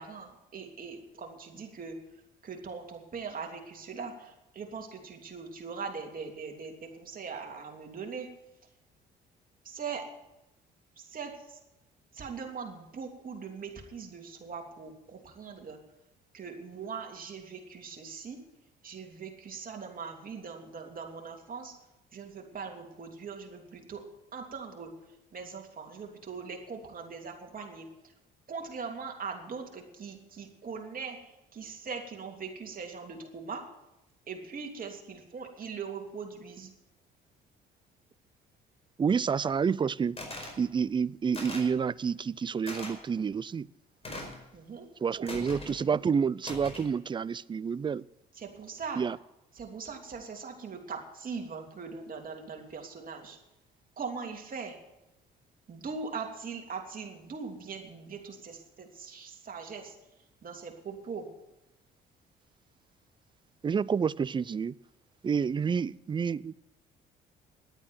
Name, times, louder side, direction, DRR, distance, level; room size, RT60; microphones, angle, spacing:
voice 1, 0.0-2.0 2.4-8.3 9.6-10.1 11.0-11.6 12.1-15.8 16.3-18.4 18.8-21.7 22.1-24.0 24.3-24.9 25.3-27.8 28.5-33.6 34.3-36.7 44.5-44.9 45.1-45.3 45.8-46.0 48.4-49.0 49.5-53.4 54.0-54.8 55.7-59.9 60.4-61.3, right 5 dB, 45° right, 3.0 m, -41 dB
voice 2, 39.0-40.2 40.6-43.7 45.0-48.1 49.0-49.2 63.6-64.8 65.2-66.6, right 6 dB, 25° right, 0.4 m, -29 dB
sound 1, 40.2-40.6 41.3-41.7 42.7-42.9 44.0-44.4 45.3-45.8 46.4-46.9, left 2 dB, 30° left, 4.9 m, -40 dB
11.0 x 9.0 x 9.3 m
supercardioid pair, 65°, 21 cm